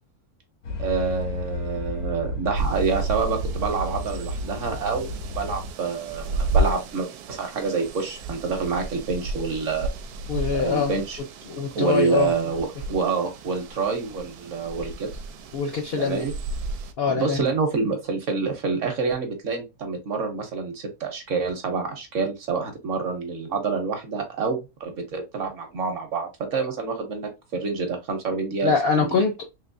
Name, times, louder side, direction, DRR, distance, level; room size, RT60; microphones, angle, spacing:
sound 1, 0.6-5.7, equal, 85° left, 1.4 m, -32 dB
voice 1, 0.8-5.1 5.3-9.9 10.5-11.2 11.7-15.1 15.9-16.3 17.0-29.2, right 5 dB, 60° right, 1.0 m, -27 dB
sound 2, 2.5-16.9, right 2 dB, 80° right, 1.1 m, -32 dB
voice 2, 10.3-10.9 11.5-12.3 15.5-16.3 17.0-17.5 28.6-29.5, left 5 dB, 65° left, 0.6 m, -24 dB
3.4 x 3.0 x 2.5 m
omnidirectional pair, 1.7 m